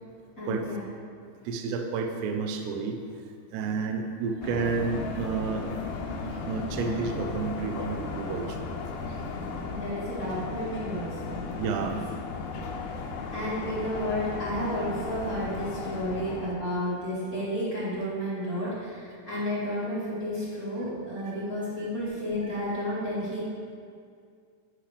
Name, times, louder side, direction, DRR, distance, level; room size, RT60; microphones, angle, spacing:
voice 1, 0.4-0.8 9.6-11.4 11.8-11.9 13.3-23.5, equal, 40° left, -11 dB, 1.2 m, -32 dB
voice 2, 1.5-3.0 3.5-5.7 6.2-8.7 9.1-9.2 11.6-12.1 21.3-21.5 21.8-21.9 22.5-22.8, right 5 dB, 80° right, 4 dB, 2.5 m, -31 dB
sound 1, 4.4-16.5, left 4 dB, 75° left, 2.3 m, -35 dB
10.5 x 9.8 x 3.4 m, 2.2 s
omnidirectional pair, 5.3 m